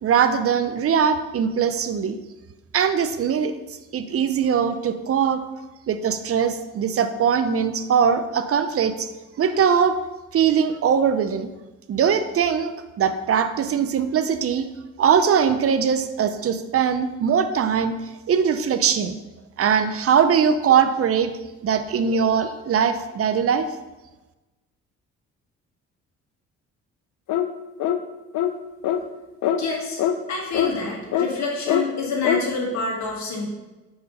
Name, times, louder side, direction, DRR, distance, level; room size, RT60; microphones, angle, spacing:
voice 1, 0.0-2.2 2.7-3.5 3.9-5.4 5.9-9.1 9.4-10.0 10.3-11.5 11.9-14.7 15.0-18.0 18.3-19.2 19.6-21.3 21.6-23.7, right 7 dB, 50° right, 10 dB, 0.6 m, -21 dB
sound 1, 27.3-27.5 27.8-28.0 28.3-28.5 28.8-29.0 29.4-29.6 30.0-30.1 30.5-30.7 31.1-31.3 31.7-31.8 32.2-32.4, left 10 dB, 80° left, 0.6 m, -22 dB
voice 2, 29.6-30.0 30.3-33.5, left 3 dB, 65° left, -2 dB, 2.0 m, -27 dB
5.3 x 4.9 x 5.2 m, 1.1 s
cardioid pair, 90°, 30 cm